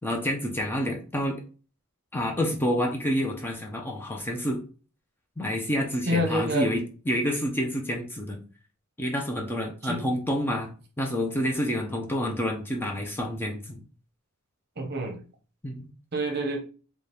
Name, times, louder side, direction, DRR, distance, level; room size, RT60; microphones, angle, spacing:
voice 1, 0.0-1.4 2.1-4.6 5.4-8.4 9.0-10.7 11.0-13.8 15.6-15.9, equal, 10° left, 0.5 m, -28 dB
voice 2, 6.1-6.7 9.8-10.0 14.8-15.2 16.1-16.6, equal, 45° right, 0.8 m, -27 dB
4.0 x 2.4 x 3.4 m
head